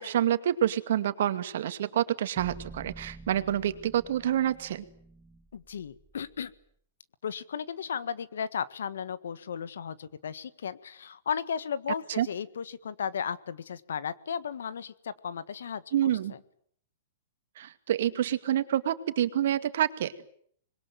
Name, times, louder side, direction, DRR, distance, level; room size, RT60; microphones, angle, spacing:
voice 1, 0.0-4.8 12.2-12.3 15.9-16.3 17.6-20.1, right 11 dB, 65° right, 10 dB, 2.3 m, -27 dB
sound 1, 2.4-6.6, right 4 dB, 15° right, 1.9 m, -48 dB
voice 2, 5.5-6.5 7.2-16.4, left 7 dB, 80° left, 16 dB, 1.6 m, -35 dB
26.0 x 21.5 x 9.3 m, 0.63 s
hypercardioid pair, 135°, 0 cm